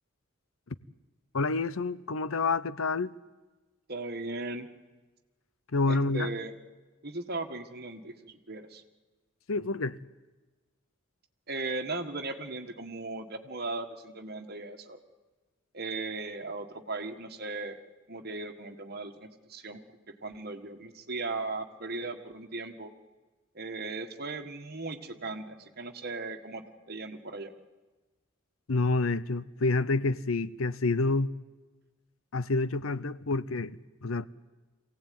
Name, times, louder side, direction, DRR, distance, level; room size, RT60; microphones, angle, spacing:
voice 1, 1.3-3.1 5.7-6.3 9.5-10.0 28.7-31.3 32.3-34.3, left 3 dB, 75° left, 0.8 m, -28 dB
voice 2, 3.9-4.7 5.9-6.5 7.0-8.8 11.5-15.0 15.7-17.8 18.1-19.8 20.2-22.9 23.5-27.5, right 3 dB, 50° right, 1.8 m, -37 dB
24.0 x 17.0 x 9.5 m
head